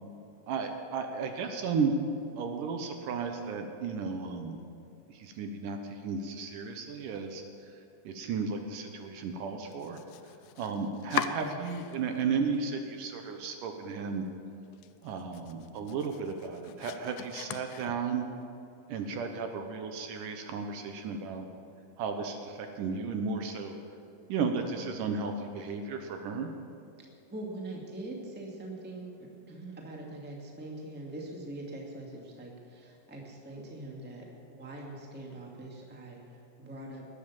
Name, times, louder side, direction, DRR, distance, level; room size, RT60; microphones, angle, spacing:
voice 1, 0.5-1.9 2.4-4.6 5.1-7.7 8.0-10.0 10.6-14.3 15.0-18.2 18.9-21.5 22.0-23.8 24.3-26.5, right 5 dB, 75° right, 5 dB, 2.5 m, -34 dB
Domestic sounds home sounds, 9.6-12.2 12.5-13.3 13.6-13.7 14.2-14.3 14.6-18.3, left 11 dB, 85° left, 2.4 m, -40 dB
voice 2, 27.3-37.1, right 2 dB, 5° right, -1 dB, 1.4 m, -43 dB
20.0 x 8.7 x 7.2 m, 2.7 s
omnidirectional pair, 4.1 m